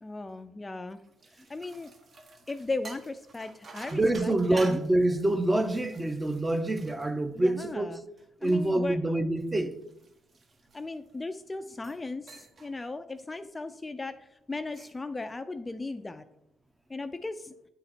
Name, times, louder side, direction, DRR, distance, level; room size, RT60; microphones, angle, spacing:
voice 1, 0.0-1.0 1.5-1.9 2.5-4.9 7.3-8.0 8.4-9.0 10.7-16.2 16.9-17.5, left 3 dB, 20° left, 0.4 m, -37 dB
sound 1, 0.9-7.7 8.2-11.2 11.7-12.0 12.3-12.7 13.1-13.4 14.5-15.1, right 3 dB, 45° right, 1.0 m, -50 dB
voice 2, 3.9-7.9 8.4-9.7, right 1 dB, 15° right, 0.7 m, -26 dB
8.7 x 4.1 x 4.1 m
cardioid pair, 90°, 0 cm